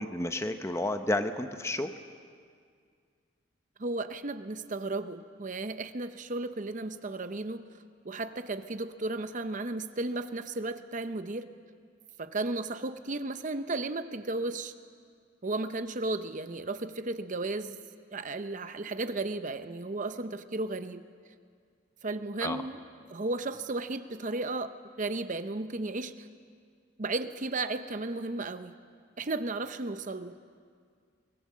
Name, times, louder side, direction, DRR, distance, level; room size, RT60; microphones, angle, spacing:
voice 1, 0.0-1.9 22.4-22.6, left 1 dB, 15° left, 8 dB, 0.8 m, -31 dB
voice 2, 3.8-7.6 8.0-11.5 12.2-14.7 15.4-17.8 18.1-21.0 22.0-22.8 23.1-26.3 27.0-28.7 29.2-30.3, right 2 dB, 40° right, 10 dB, 0.7 m, -34 dB
23.5 x 19.0 x 7.4 m, 2.1 s
head